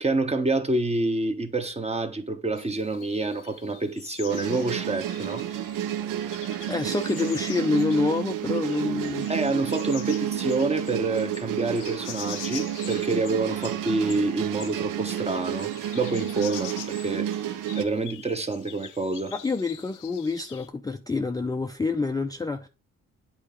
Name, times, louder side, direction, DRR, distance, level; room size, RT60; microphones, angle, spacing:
voice 1, 0.0-5.5 9.3-17.3 17.8-19.3, right 3 dB, 20° right, 1.0 m, -27 dB
sound 1, 2.5-20.7, left 12 dB, 80° left, 0.6 m, -45 dB
sound 2, 4.3-17.9, right 11 dB, 80° right, 0.7 m, -31 dB
voice 2, 6.7-9.3 19.3-22.7, left 3 dB, 10° left, 0.4 m, -27 dB
8.7 x 4.1 x 3.7 m
cardioid pair, 90°, 31 cm